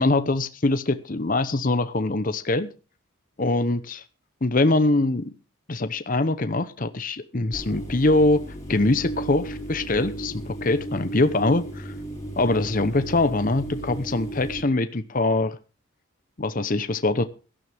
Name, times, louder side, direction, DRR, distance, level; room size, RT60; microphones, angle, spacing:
voice 1, 0.0-2.7 3.4-4.0 4.4-5.3 5.7-8.4 8.7-11.9 12.4-15.6 16.4-17.3, left 2 dB, 40° left, 10 dB, 0.8 m, -23 dB
sound 1, 7.5-14.6, right 2 dB, 15° left, 4.2 m, -35 dB
17.0 x 12.5 x 3.5 m, 0.33 s
head